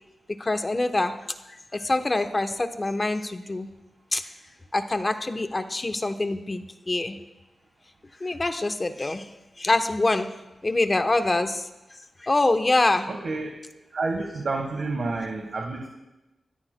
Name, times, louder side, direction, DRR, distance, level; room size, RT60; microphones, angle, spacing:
voice 1, 0.4-1.1 1.5-3.7 4.1-4.2 4.7-7.2 8.2-9.3 9.6-10.3 10.6-11.7 12.2-13.1, left 2 dB, 25° left, 7 dB, 0.9 m, -25 dB
voice 2, 13.1-13.6 13.9-15.9, right 3 dB, 60° right, 2 dB, 1.3 m, -29 dB
22.5 x 14.0 x 2.2 m, 0.99 s
wide cardioid pair, 120°, 0 cm